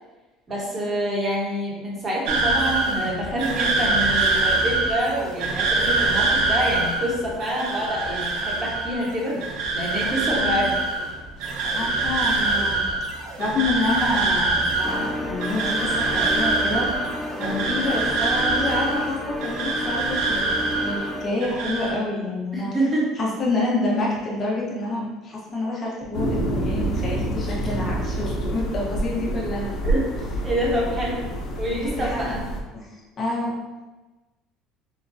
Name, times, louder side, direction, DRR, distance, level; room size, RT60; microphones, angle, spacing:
voice 1, 0.5-10.8 17.4-17.6 22.5-23.1 29.1-29.2 29.8-30.0 30.4-31.2 31.6-32.4, equal, 25° right, -4 dB, 1.1 m, -26 dB
sound 1, 2.3-21.1 21.4-21.9, right 3 dB, 80° right, 0.8 m, -24 dB
voice 2, 11.4-12.8 13.4-16.9 17.4-22.7 23.2-29.7 31.7-32.3 32.7-33.6, left 2 dB, 30° left, -4 dB, 1.0 m, -28 dB
sound 2, 14.8-21.3, left 1 dB, 10° left, 0.3 m, -31 dB
sound 3, 26.1-32.6, right 1 dB, 55° left, 0.8 m, -27 dB
6.2 x 2.2 x 2.7 m, 1.2 s
cardioid pair, 160°, 0 cm